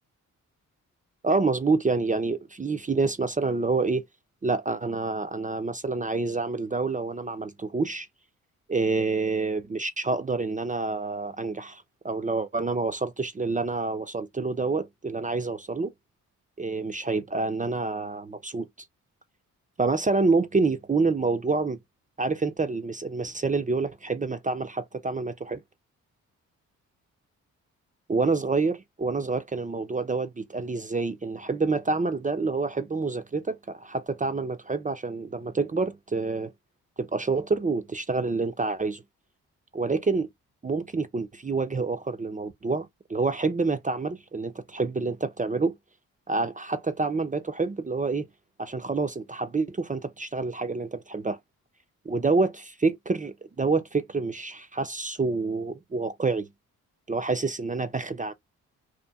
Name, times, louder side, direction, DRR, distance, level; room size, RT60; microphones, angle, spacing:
voice 1, 1.2-4.0 4.4-8.1 8.7-15.9 16.6-18.7 19.8-21.8 22.2-25.6 28.1-36.5 37.0-39.0 39.7-40.3 40.6-45.7 46.3-48.3 48.6-51.4 52.1-56.5 57.1-58.3, right 3 dB, 20° right, 0.5 m, -27 dB
2.8 x 2.4 x 2.3 m
supercardioid pair, 50°, 35 cm